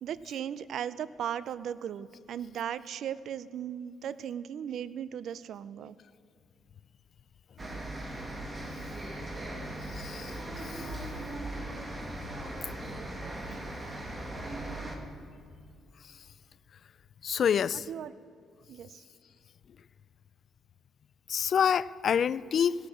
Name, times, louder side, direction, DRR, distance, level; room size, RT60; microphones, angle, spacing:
voice 1, 0.0-5.9 17.7-18.1 18.7-19.0, right 9 dB, 70° right, 17 dB, 0.4 m, -37 dB
sound 1, 7.6-15.0, right 1 dB, 20° right, 1.8 m, -38 dB
voice 2, 9.9-10.3 10.6-10.9 17.2-17.9 21.3-22.8, left 8 dB, 55° left, 19 dB, 0.3 m, -27 dB
17.0 x 7.9 x 6.2 m, 2.3 s
cardioid pair, 90°, 0 cm